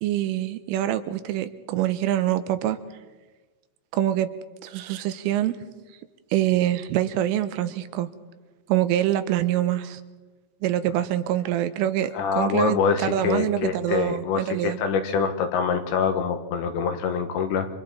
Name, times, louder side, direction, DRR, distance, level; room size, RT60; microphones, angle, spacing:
voice 1, 0.0-2.8 3.9-4.3 4.6-5.6 6.3-8.1 8.7-10.0 10.6-14.8, right 12 dB, 85° right, 11 dB, 3.4 m, -25 dB
voice 2, 12.1-17.7, left 6 dB, 70° left, 6 dB, 3.3 m, -25 dB
29.0 x 25.5 x 4.2 m, 1.2 s
omnidirectional pair, 5.8 m